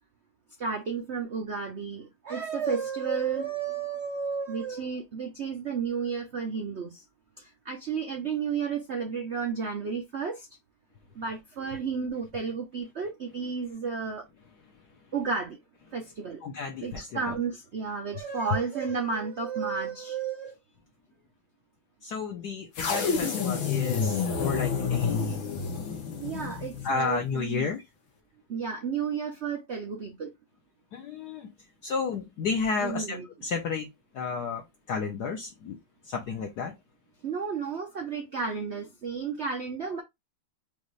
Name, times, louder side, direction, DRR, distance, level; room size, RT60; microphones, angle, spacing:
voice 1, 0.6-7.0 7.4-10.5 11.1-14.2 15.1-15.6 15.9-16.4 16.8-20.6 26.2-27.7 28.5-30.3 32.8-33.3 37.2-40.0, right 5 dB, 60° right, 0.7 m, -32 dB
voice 2, 16.4-17.0 22.0-25.4 26.8-27.8 30.9-31.5 31.8-33.2 33.4-33.9 34.1-34.6 34.9-35.8 36.1-36.7, left 5 dB, 60° left, 1.3 m, -32 dB
sound 1, 22.8-27.0, left 5 dB, 85° left, 2.0 m, -29 dB
5.4 x 2.5 x 3.1 m
omnidirectional pair, 2.2 m